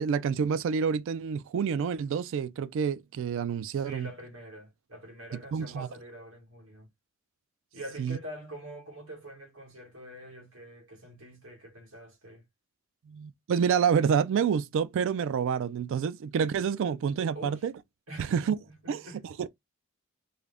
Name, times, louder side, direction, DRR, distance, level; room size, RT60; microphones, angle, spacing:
voice 1, 0.0-4.1 5.5-5.9 8.0-8.2 13.1-17.7 18.2-18.6 18.9-19.0 19.4-19.5, right 7 dB, 65° right, 0.3 m, -28 dB
voice 2, 3.7-6.9 7.7-12.4 17.3-17.7 18.1-19.2, equal, 80° right, 1.7 m, -45 dB
3.6 x 2.1 x 3.4 m
head